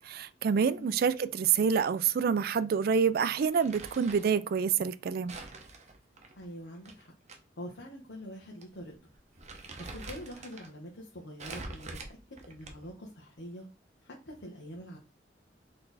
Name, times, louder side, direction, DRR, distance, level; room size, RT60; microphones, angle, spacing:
voice 1, 0.0-5.3, right 6 dB, 55° right, 0.3 m, -27 dB
Crumpling crinkling, 3.4-4.4 5.3-7.4 7.7-7.8 8.6-8.8 9.1-10.7 11.4-13.0, right 3 dB, 40° right, 0.8 m, -45 dB
voice 2, 6.4-7.1 7.6-8.9 9.8-12.2 12.5-13.7 14.0-15.0, equal, 75° left, 1.1 m, -45 dB
4.0 x 3.3 x 4.0 m
head